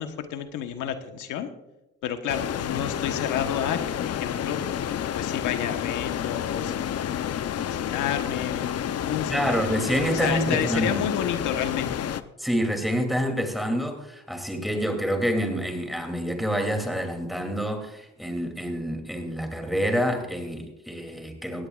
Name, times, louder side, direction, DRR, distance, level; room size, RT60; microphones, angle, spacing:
voice 1, 0.0-1.5 2.0-4.6 5.1-7.0 7.6-8.7 9.0-9.6 10.1-12.1, left 9 dB, 90° left, 7 dB, 1.2 m, -30 dB
sound 1, 2.3-12.2, left 9 dB, 55° left, 0.7 m, -30 dB
voice 2, 9.3-11.0 12.4-21.7, equal, ahead, 4 dB, 2.8 m, -27 dB
17.0 x 16.0 x 2.4 m, 0.94 s
cardioid pair, 90°, 30 cm